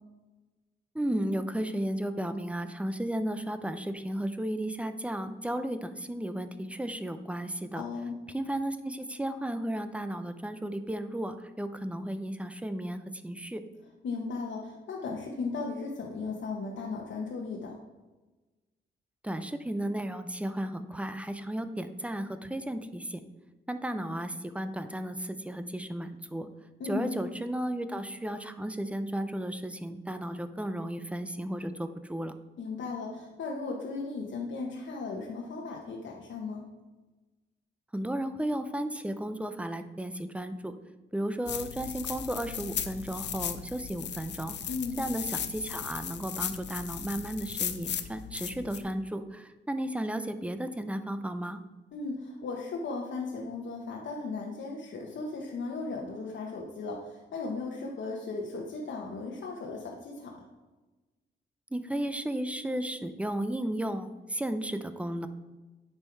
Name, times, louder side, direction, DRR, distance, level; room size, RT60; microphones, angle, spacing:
voice 1, 0.9-7.9 8.3-13.6 19.2-23.2 23.7-26.5 26.8-32.3 37.9-40.7 41.1-44.5 45.0-51.6 61.7-65.3, right 1 dB, 5° right, 10 dB, 0.6 m, -34 dB
voice 2, 7.7-8.2 14.0-17.7 26.8-27.2 32.6-36.6 44.7-45.1 51.9-60.3, left 3 dB, 80° left, -1 dB, 1.1 m, -36 dB
sound 1, 41.5-48.8, left 8 dB, 65° left, 0.6 m, -37 dB
9.6 x 5.6 x 4.6 m, 1.2 s
wide cardioid pair, 140°, 19 cm